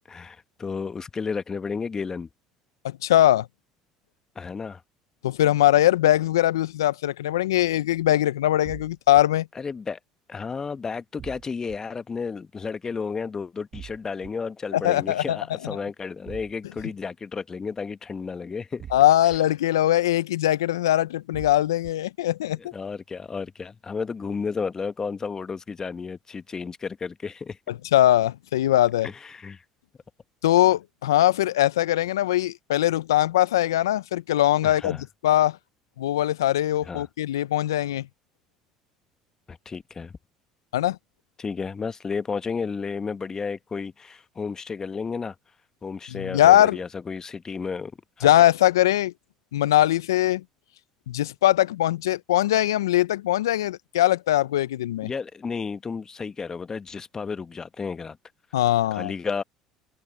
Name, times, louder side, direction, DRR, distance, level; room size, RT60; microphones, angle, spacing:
voice 1, 0.1-2.3 4.3-4.8 9.5-10.0 10.3-18.8 22.6-27.6 29.0-29.6 34.6-35.0 36.8-37.1 39.5-40.1 41.4-45.3 45.8-47.9 48.2-48.3 55.0-58.2 58.9-59.4, left 5 dB, 30° left, 1.2 m, -32 dB
voice 2, 2.8-3.5 5.2-9.5 14.7-15.4 18.9-22.6 27.9-29.1 30.4-35.0 35.2-35.6 36.0-38.1 40.7-41.0 46.1-46.8 48.2-49.1 49.5-50.4 51.1-55.1 58.5-59.1, left 13 dB, 85° left, 0.7 m, -21 dB
sound 1, 8.6-9.2 11.2-11.8 13.7-14.3 16.3-16.8 18.8-19.4 21.3-21.9, right 9 dB, 45° right, 1.6 m, -42 dB
hypercardioid pair, 65°, 2 cm